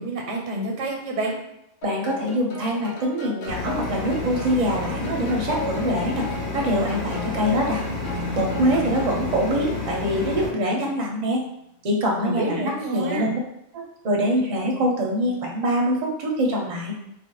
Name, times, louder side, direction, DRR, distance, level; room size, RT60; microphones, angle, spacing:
voice 1, 0.0-1.4 12.2-13.3, right 2 dB, 85° right, 1 dB, 1.0 m, -28 dB
sound 1, 1.8-9.2, left 1 dB, 80° left, 1.1 m, -36 dB
voice 2, 1.8-6.3 6.5-7.8 8.3-11.4 11.8-13.4 13.7-16.9, equal, 45° right, -1 dB, 0.6 m, -24 dB
sound 2, 3.5-10.5, left 3 dB, 30° left, 1.2 m, -30 dB
Keyboard (musical), 8.1-11.3, left 4 dB, 55° left, 0.8 m, -39 dB
2.5 x 2.1 x 3.8 m, 0.81 s
omnidirectional pair, 1.2 m